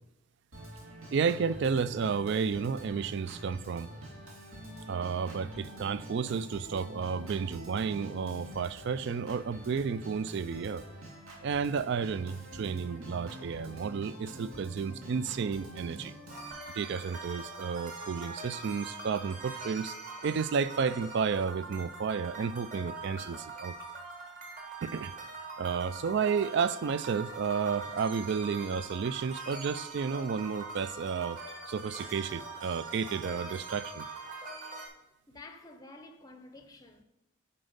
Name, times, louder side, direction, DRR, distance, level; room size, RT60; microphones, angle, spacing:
Organ, 0.5-16.5, right 1 dB, 75° right, 2.2 m, -46 dB
voice 1, 1.1-3.9 4.9-10.8 11.4-16.1 16.7-20.0 20.2-23.7 24.8-25.1 25.6-31.4 31.7-34.1, right 6 dB, 55° right, 0.3 m, -32 dB
sound 1, 16.3-34.9, right 3 dB, 35° right, 1.4 m, -43 dB
voice 2, 35.3-37.0, left 2 dB, 15° left, 0.6 m, -51 dB
10.0 x 4.4 x 5.1 m
head